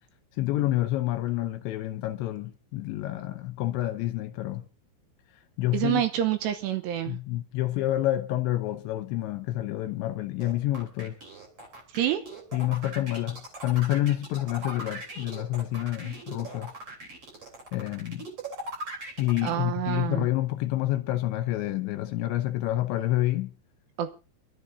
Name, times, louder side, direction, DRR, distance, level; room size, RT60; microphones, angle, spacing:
voice 1, 0.3-4.6 5.6-6.0 7.1-11.2 12.5-16.7 17.7-18.3 19.2-23.5, left 15 dB, 80° left, 2.9 m, -28 dB
voice 2, 5.7-7.2 11.9-12.2 19.4-20.3 24.0-24.1, right 11 dB, 75° right, 2.6 m, -27 dB
sound 1, 10.4-19.5, right 1 dB, 35° right, 3.6 m, -40 dB
28.0 x 12.5 x 2.6 m
omnidirectional pair, 5.8 m